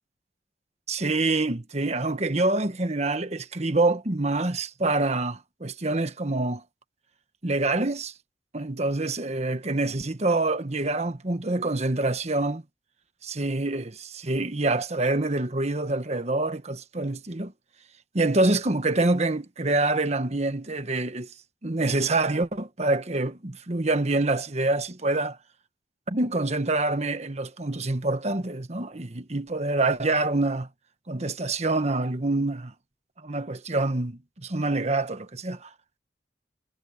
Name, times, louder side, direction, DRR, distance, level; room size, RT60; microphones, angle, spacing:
voice 1, 0.9-6.6 7.4-8.1 8.5-12.6 13.2-17.5 18.1-21.3 21.6-25.4 26.1-30.7 31.1-32.7 33.2-35.7, right 2 dB, 40° right, 1.3 m, -26 dB
head